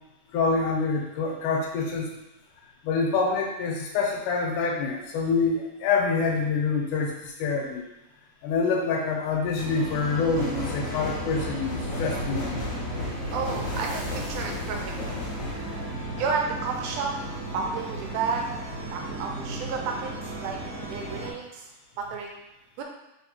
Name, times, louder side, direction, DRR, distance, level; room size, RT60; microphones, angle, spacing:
voice 1, 0.3-2.2 2.8-7.8 8.4-12.6 21.2-21.3, left 4 dB, 80° left, 0 dB, 2.2 m, -26 dB
sound 1, 9.6-21.3, right 2 dB, 55° right, 1.5 m, -36 dB
sound 2, 10.3-16.3, left 2 dB, 50° left, 1.7 m, -34 dB
voice 2, 13.3-15.2 15.5-15.9 16.2-17.1 17.5-18.5 18.9-20.6 20.9-21.7 22.0-22.4 22.8-22.9, right 5 dB, 80° right, 1 dB, 2.0 m, -31 dB
4.2 x 3.9 x 3.0 m, 0.93 s
omnidirectional pair, 3.7 m